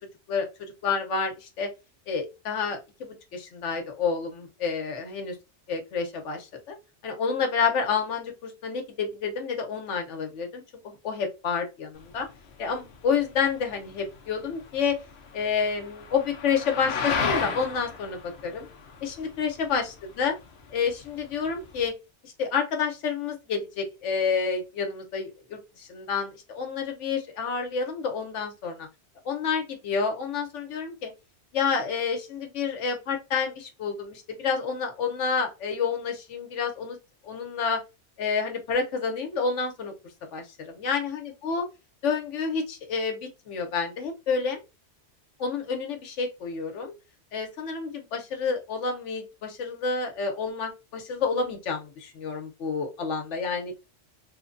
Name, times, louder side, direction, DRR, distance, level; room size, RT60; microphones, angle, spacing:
voice 1, 0.3-1.7 2.1-5.4 5.7-6.8 7.0-10.6 11.0-12.3 12.6-15.0 15.3-18.7 19.0-20.3 20.7-21.9 22.2-28.9 29.2-31.1 31.5-37.0 37.2-37.8 38.2-39.9 40.3-41.6 42.0-44.6 45.4-46.9 47.3-53.7, left 5 dB, 85° left, 4 dB, 1.1 m, -29 dB
sound 1, 12.0-21.9, left 5 dB, 70° left, 0.8 m, -35 dB
3.0 x 2.2 x 2.4 m, 0.27 s
omnidirectional pair, 1.2 m